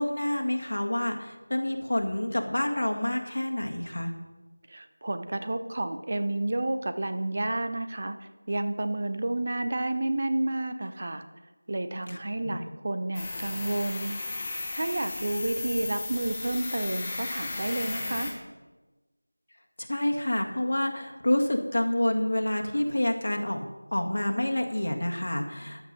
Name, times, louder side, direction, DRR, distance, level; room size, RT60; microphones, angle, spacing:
voice 1, 0.0-4.1 12.1-12.2 12.4-12.6 19.8-23.7 23.9-25.9, left 1 dB, 60° left, 3 dB, 1.8 m, -28 dB
voice 2, 4.7-11.2 11.7-14.2 14.7-18.3, right 2 dB, 35° right, 9 dB, 0.7 m, -30 dB
sound 1, 13.1-18.3, left 3 dB, 15° left, 1.5 m, -35 dB
14.5 x 10.0 x 4.1 m, 1.2 s
figure-of-eight pair, 175°, 0 cm